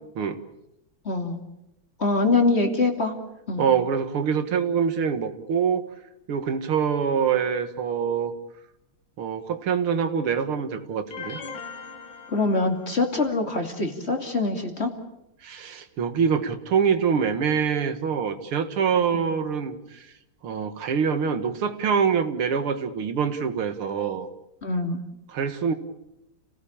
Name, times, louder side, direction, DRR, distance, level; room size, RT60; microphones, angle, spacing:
voice 1, 1.0-1.4 2.0-3.1 3.5-3.7 12.3-14.9 19.1-19.2 24.6-25.0, left 3 dB, 30° left, 4 dB, 2.9 m, -24 dB
voice 2, 3.6-5.8 6.3-8.3 9.2-11.4 15.4-20.1 20.4-24.3 25.3-25.7, right 6 dB, 80° right, 9 dB, 2.4 m, -25 dB
sound 1, 11.1-13.2, left 5 dB, 65° left, 2.6 m, -40 dB
29.5 x 17.5 x 8.7 m, 0.88 s
omnidirectional pair, 2.4 m